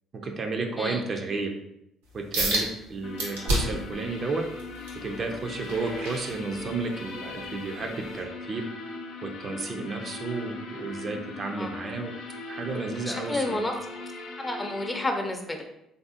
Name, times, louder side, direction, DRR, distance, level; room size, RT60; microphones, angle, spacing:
voice 1, 0.1-1.5 2.1-4.5 5.0-8.7 9.2-12.1 12.5-13.6, right 3 dB, 45° right, 3 dB, 0.4 m, -32 dB
sound 1, 2.3-2.7 3.2-3.9 4.4-6.9 7.4-7.7 8.2-8.3, right 1 dB, 85° right, 0.7 m, -29 dB
sound 2, 3.0-15.0, left 3 dB, 70° left, 0.5 m, -40 dB
voice 2, 12.7-13.7 14.4-15.6, left 2 dB, 20° left, 4 dB, 0.6 m, -30 dB
3.3 x 2.6 x 2.4 m, 0.81 s
hypercardioid pair, 55°, 0 cm